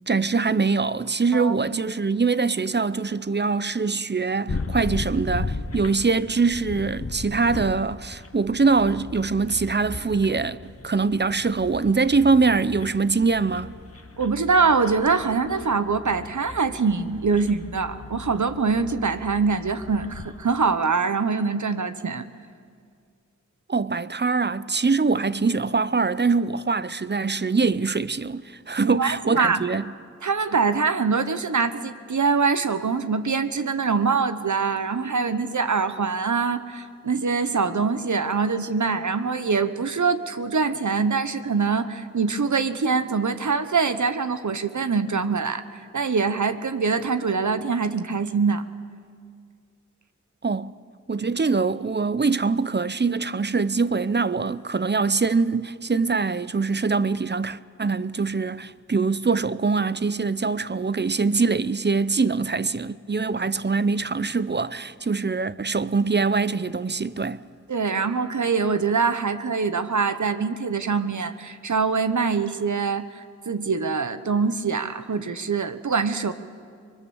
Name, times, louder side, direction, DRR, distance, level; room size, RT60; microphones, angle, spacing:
voice 1, 0.1-13.7 23.7-29.9 50.4-50.7 51.1-67.4, right 4 dB, 35° right, 0.6 m, -23 dB
voice 2, 1.3-1.8 14.2-22.3 28.8-29.6 30.2-45.6 45.9-48.7 67.7-76.3, right 5 dB, 80° right, 1.1 m, -24 dB
sound 1, 4.5-20.5, left 3 dB, 50° left, 1.4 m, -37 dB
24.5 x 21.5 x 7.1 m
wide cardioid pair, 50°, 29 cm